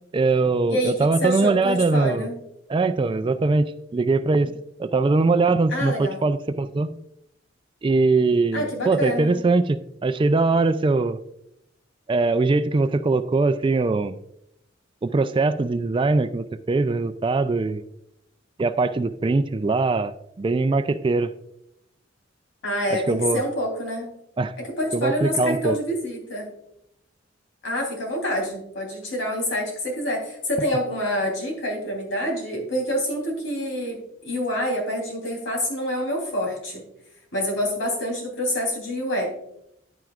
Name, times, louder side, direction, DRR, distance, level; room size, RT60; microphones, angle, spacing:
voice 1, 0.1-2.3 2.7-4.5 4.8-7.0 7.8-11.2 12.1-14.2 15.0-17.8 18.6-21.3 22.9-23.4 24.4-24.5 24.9-25.8, right 3 dB, 25° right, 12 dB, 0.3 m, -22 dB
voice 2, 0.7-2.4 5.7-6.2 8.5-9.4 22.6-24.1 24.6-26.5 27.6-36.8 37.3-39.3, equal, 70° left, 0 dB, 3.5 m, -27 dB
10.0 x 9.1 x 2.4 m, 0.77 s
head